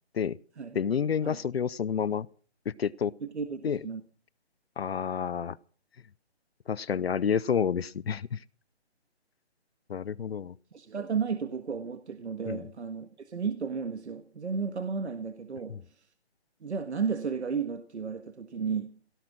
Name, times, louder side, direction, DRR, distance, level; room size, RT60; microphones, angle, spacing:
voice 1, 0.7-2.3 2.7-3.1 3.6-3.8 4.8-5.6 6.7-8.4 9.9-10.5 12.5-12.7 15.7-15.8, left 7 dB, 65° left, 0.7 m, -29 dB
voice 2, 3.2-4.0 10.7-16.0 16.6-19.0, right 6 dB, 80° right, 1.7 m, -33 dB
17.5 x 13.5 x 6.1 m
hypercardioid pair, 165°, 33 cm